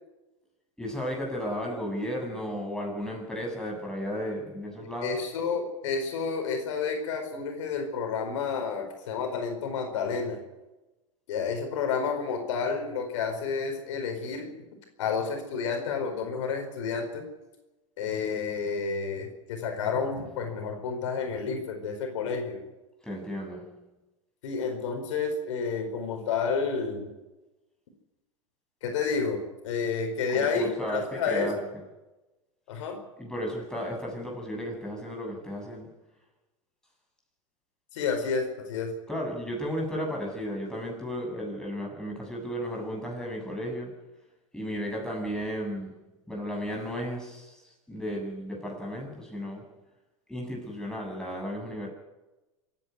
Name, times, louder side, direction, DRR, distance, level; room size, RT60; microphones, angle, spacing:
voice 1, 0.8-5.2 20.2-20.3 23.0-23.8 30.3-31.5 33.2-35.9 39.1-44.0 44.5-45.9 46.3-49.7 50.3-51.9, equal, 5° left, -1 dB, 7.8 m, -34 dB
voice 2, 5.0-10.4 11.3-14.5 15.0-17.3 18.0-22.6 24.4-27.1 28.8-31.6 32.7-33.0 37.9-38.9, left 5 dB, 75° left, 4 dB, 4.6 m, -30 dB
26.0 x 10.5 x 9.5 m, 1.1 s
hypercardioid pair, 100°, 16 cm